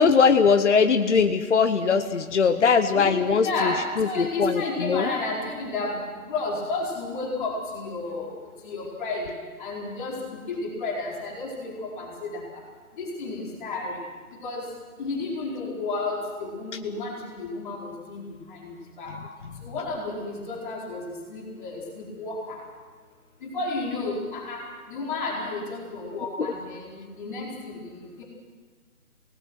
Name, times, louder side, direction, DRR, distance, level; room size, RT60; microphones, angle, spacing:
voice 1, 0.0-5.1, left 5 dB, 50° left, 9 dB, 1.0 m, -21 dB
voice 2, 2.9-6.0 6.3-8.3 8.6-9.3 9.6-10.2 10.5-12.4 13.0-14.0 14.4-14.6 15.0-17.1 17.4-18.2 18.5-19.1 19.6-21.0 21.3-22.6 23.4-24.6 24.9-26.9 27.2-28.2, left 3 dB, 35° left, -3 dB, 4.5 m, -31 dB
27.5 x 19.0 x 6.2 m, 1.5 s
figure-of-eight pair, 150°, 45 cm